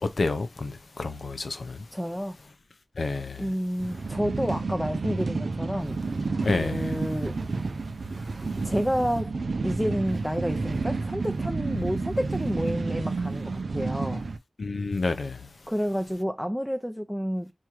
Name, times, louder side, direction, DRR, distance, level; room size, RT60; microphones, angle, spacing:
voice 1, 0.0-1.8 3.0-3.4 6.4-6.9 14.6-15.4, left 3 dB, 70° left, 0.7 m, -29 dB
voice 2, 1.9-2.4 3.4-6.0 6.6-7.4 8.6-9.3 9.6-14.2 15.7-17.5, equal, ahead, 0.6 m, -29 dB
sound 1, 3.8-14.4, right 3 dB, 75° right, 0.5 m, -30 dB
4.4 x 3.6 x 3.0 m
wide cardioid pair, 90°, 0 cm